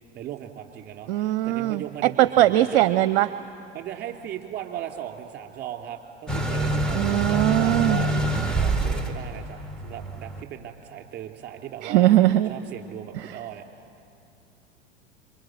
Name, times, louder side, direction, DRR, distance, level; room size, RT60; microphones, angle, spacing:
voice 1, 0.1-2.9 3.7-8.1 8.5-12.1 12.4-13.6, right 11 dB, 30° right, 3 dB, 3.1 m, -37 dB
voice 2, 1.1-1.8 2.2-3.3 6.9-8.0 11.8-12.5, right 14 dB, 55° right, 14 dB, 0.7 m, -20 dB
sound 1, 6.3-10.4, right 2 dB, ahead, 2.1 m, -26 dB
26.5 x 24.5 x 7.7 m, 2.5 s
figure-of-eight pair, 90°, 33 cm